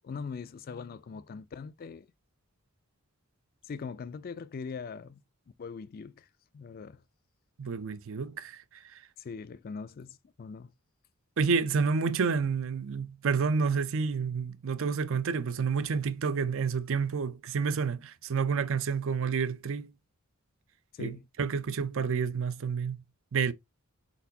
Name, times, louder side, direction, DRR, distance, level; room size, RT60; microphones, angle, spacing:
voice 1, 0.0-2.1 3.7-5.2 5.6-6.3 6.5-7.0 9.2-10.7 20.9-21.3, left 5 dB, 45° left, 0.3 m, -41 dB
voice 2, 7.6-8.6 11.4-19.9 21.0-23.0 23.3-23.5, right 5 dB, 60° right, 0.5 m, -29 dB
4.5 x 4.1 x 2.7 m
head